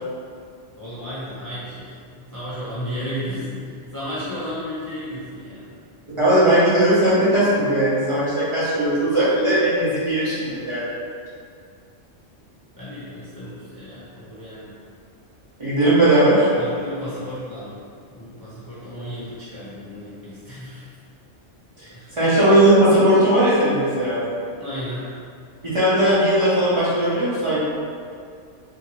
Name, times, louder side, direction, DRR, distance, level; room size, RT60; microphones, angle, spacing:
voice 1, 0.8-5.7 12.8-14.7 16.6-17.8 18.1-20.8 21.9-22.2 24.6-25.1, equal, 30° left, -11 dB, 0.4 m, -33 dB
voice 2, 6.2-10.9 15.6-16.5 21.8-21.9 22.2-24.2 25.6-27.6, right 1 dB, 30° right, -11 dB, 0.7 m, -18 dB
2.7 x 2.5 x 2.8 m, 2.2 s
omnidirectional pair, 1.2 m